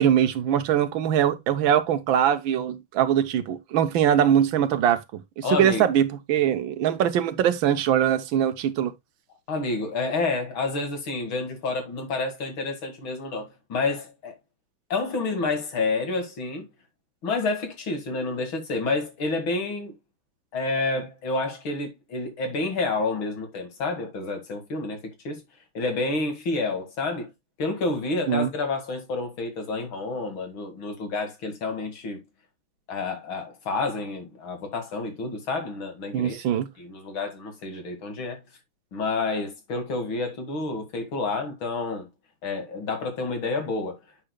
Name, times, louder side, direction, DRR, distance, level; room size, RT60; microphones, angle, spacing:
voice 1, 0.0-8.9 28.3-28.5 36.1-36.7, right 10 dB, 75° right, 1.5 m, -22 dB
voice 2, 5.4-5.9 9.5-14.4 14.9-16.7 17.2-19.9 20.5-25.4 25.7-27.3 27.6-32.2 32.9-38.4 38.9-42.1 42.4-44.0, left 3 dB, 75° left, 2.9 m, -29 dB
8.7 x 6.7 x 2.2 m
omnidirectional pair, 2.2 m